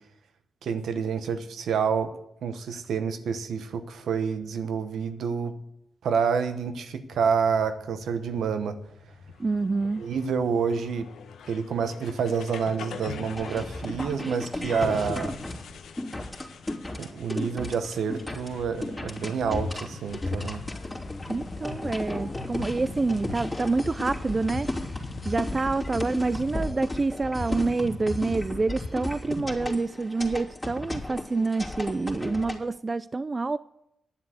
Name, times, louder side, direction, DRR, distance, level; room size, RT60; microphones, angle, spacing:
voice 1, 0.6-2.1 2.4-5.5 6.0-8.8 10.0-11.1 11.5-15.4 17.0-20.6, right 6 dB, 80° right, 10 dB, 1.0 m, -28 dB
sound 1, 7.1-25.1, left 6 dB, 85° left, 0.9 m, -45 dB
voice 2, 9.4-10.0 21.3-24.7 25.2-33.6, right 3 dB, 40° right, 17 dB, 0.3 m, -27 dB
sound 2, 13.3-32.6, left 2 dB, 15° left, 3.1 m, -34 dB
sound 3, 20.1-26.7, left 4 dB, 50° left, 0.7 m, -42 dB
10.5 x 7.7 x 7.9 m, 0.80 s
supercardioid pair, 50°, 0 cm